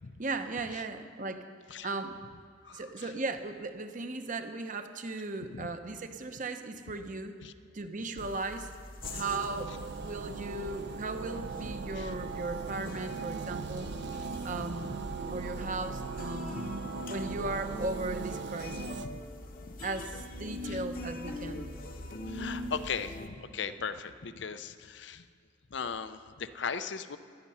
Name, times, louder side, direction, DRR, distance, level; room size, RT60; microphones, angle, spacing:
voice 1, 0.2-1.5 1.8-2.2 2.7-7.4 7.7-8.7 9.1-9.8 10.0-13.9 14.4-14.9 15.3-16.6 17.1-19.0 19.8-21.7, right 3 dB, 40° right, 8 dB, 0.9 m, -37 dB
voice 2, 2.6-3.1 5.5-5.7 7.4-7.5 12.0-12.1 14.8-14.9 16.5-16.8 19.0-19.2 20.6-20.8 22.3-25.2 25.7-27.2, left 6 dB, 65° left, 11 dB, 0.6 m, -38 dB
sound 1, 8.2-23.3, left 1 dB, 45° left, 1.0 m, -43 dB
sound 2, 9.0-19.1, right 5 dB, 60° right, 0.4 m, -39 dB
15.5 x 11.5 x 5.6 m, 2.3 s
head